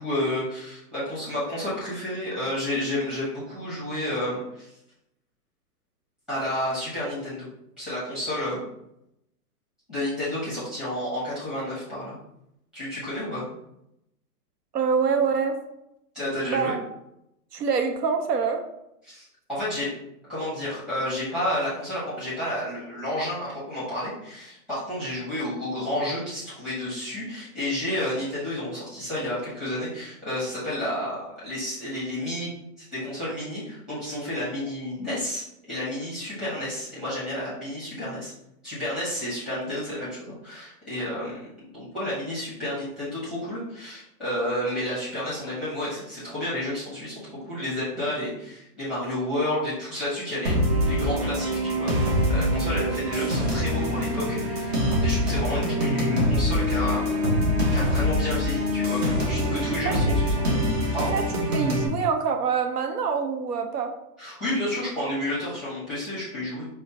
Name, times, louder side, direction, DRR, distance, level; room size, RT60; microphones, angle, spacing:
voice 1, 0.0-4.7 6.3-7.5 7.8-8.7 9.9-12.2 12.7-13.4 16.1-16.7 19.0-19.9 20.3-32.5 32.8-38.3 38.6-50.6 50.9-51.9 52.3-54.7 55.0-57.0 57.7-59.0 59.3-60.6 60.9-61.1 64.2-66.7, left 1 dB, ahead, -11 dB, 0.8 m, -31 dB
voice 2, 14.7-15.6 16.5-16.8 17.5-18.6 59.7-59.9 61.1-61.2 61.5-63.9, right 6 dB, 80° right, 5 dB, 0.7 m, -25 dB
sound 1, 50.4-61.9, equal, 40° right, 0.8 m, -24 dB
5.1 x 2.1 x 2.7 m, 0.82 s
hypercardioid pair, 165°, 48 cm